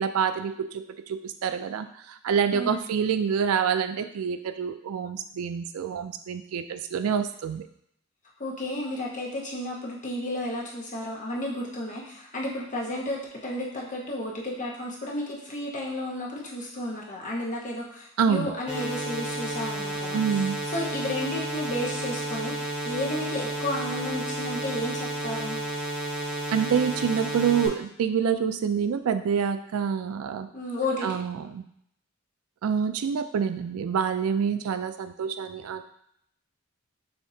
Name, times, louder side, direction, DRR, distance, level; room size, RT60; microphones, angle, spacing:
voice 1, 0.0-7.6 18.2-18.5 20.1-20.6 26.5-30.5 31.0-31.7 32.6-35.8, right 7 dB, 90° right, 10 dB, 0.4 m, -27 dB
voice 2, 8.4-20.2 20.7-25.6 30.5-31.1, left 1 dB, 35° left, -3 dB, 1.0 m, -32 dB
sound 1, 18.7-27.7, right 1 dB, 5° right, 0.9 m, -32 dB
6.6 x 2.8 x 2.7 m, 0.71 s
head